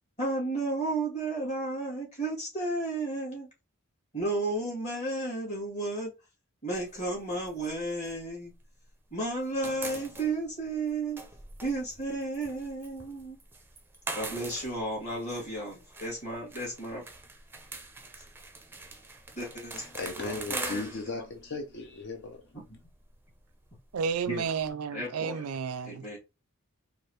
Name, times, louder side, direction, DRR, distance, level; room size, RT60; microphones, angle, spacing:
voice 1, 0.2-3.5 4.1-6.1 6.6-8.5 9.1-11.2 11.6-13.4 14.1-17.0 19.4-19.8 20.2-21.2 22.5-22.6 24.3-24.4 24.9-25.4 25.8-26.2, right 2 dB, 30° left, 2.4 m, -33 dB
sound 1, 6.7-9.0 9.3-24.7, right 3 dB, 10° right, 0.5 m, -44 dB
voice 2, 19.8-22.5, left 3 dB, 55° left, 0.6 m, -37 dB
voice 3, 23.9-26.1, right 6 dB, 75° right, 0.4 m, -32 dB
4.6 x 2.4 x 3.1 m
head